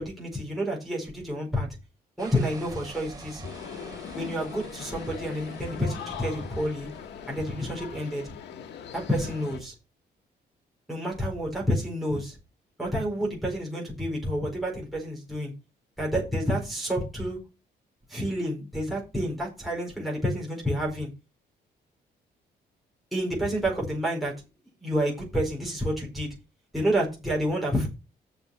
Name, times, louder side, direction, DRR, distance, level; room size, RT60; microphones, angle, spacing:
voice 1, 0.0-1.7 2.2-3.4 4.1-6.9 7.3-8.3 8.9-9.7 10.9-12.4 12.8-15.5 16.0-17.4 18.1-21.1 23.1-24.3 24.8-26.3 26.7-27.9, equal, ahead, -3 dB, 4.8 m, -29 dB
sound 1, 2.2-7.3, right 3 dB, 20° right, 3.1 m, -47 dB
sound 2, 3.4-9.6, left 8 dB, 90° left, 1.5 m, -41 dB
7.0 x 5.8 x 7.2 m, 0.28 s
cardioid pair, 130°, 17 cm